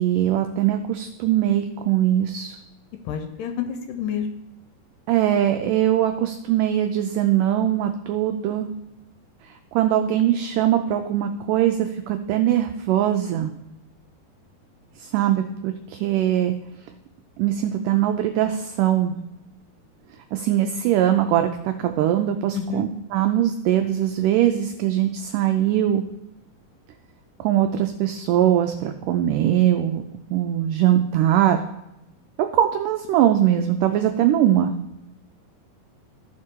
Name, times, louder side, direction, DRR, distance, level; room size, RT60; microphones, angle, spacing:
voice 1, 0.0-2.5 5.1-8.7 9.7-13.5 15.0-16.6 17.4-19.2 20.3-26.0 27.4-30.0 30.3-31.6 32.5-34.7, right 11 dB, 85° right, 6 dB, 1.8 m, -21 dB
voice 2, 3.1-4.3 22.5-22.9, left 8 dB, 80° left, 6 dB, 2.0 m, -28 dB
14.0 x 4.8 x 4.4 m, 0.89 s
omnidirectional pair, 4.2 m